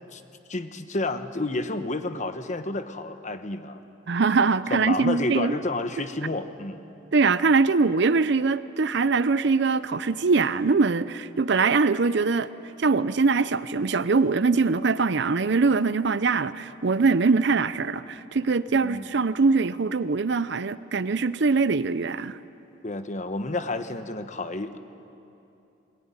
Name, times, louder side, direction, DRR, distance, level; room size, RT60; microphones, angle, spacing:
voice 1, 0.5-3.8 4.7-6.8 18.7-19.1 22.8-24.8, left 2 dB, 40° left, 1.1 m, -30 dB
voice 2, 4.1-5.6 7.1-12.5 12.8-22.4, right 4 dB, 65° right, 0.6 m, -22 dB
21.0 x 20.0 x 9.7 m
head